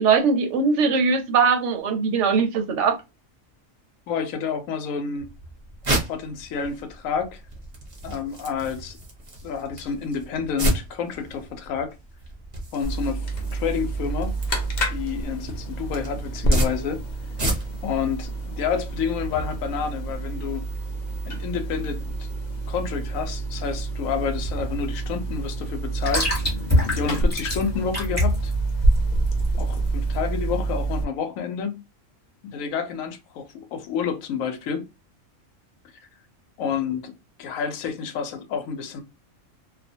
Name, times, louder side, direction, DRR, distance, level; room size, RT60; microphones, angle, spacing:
voice 1, 0.0-3.0, right 5 dB, 70° right, 0.8 m, -20 dB
voice 2, 4.1-5.3 6.1-7.4 8.0-9.0 9.4-11.9 12.7-14.4 14.9-17.0 17.8-20.7 21.3-22.3 22.7-26.3 26.9-28.5 29.6-31.8 32.5-34.9 36.6-37.1 37.4-39.0, left 6 dB, 75° left, 1.0 m, -29 dB
sound 1, 5.2-18.0, right 1 dB, 40° right, 0.5 m, -32 dB
sound 2, 12.8-31.0, right 2 dB, 50° left, 0.5 m, -28 dB
sound 3, 23.5-30.2, left 1 dB, 15° left, 1.0 m, -27 dB
2.4 x 2.1 x 2.6 m
omnidirectional pair, 1.4 m